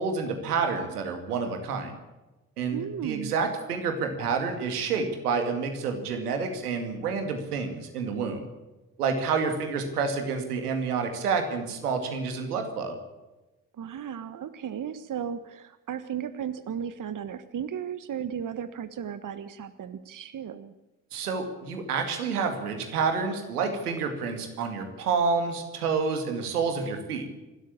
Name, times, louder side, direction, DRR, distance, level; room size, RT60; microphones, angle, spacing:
voice 1, 0.0-1.9 2.6-8.5 9.0-13.0 21.1-27.3, right 5 dB, 80° right, 6 dB, 2.4 m, -29 dB
voice 2, 2.7-3.3 13.8-20.7, right 8 dB, 45° right, 12 dB, 1.4 m, -35 dB
26.5 x 13.0 x 8.7 m, 1.1 s
figure-of-eight pair, 40°, 45 cm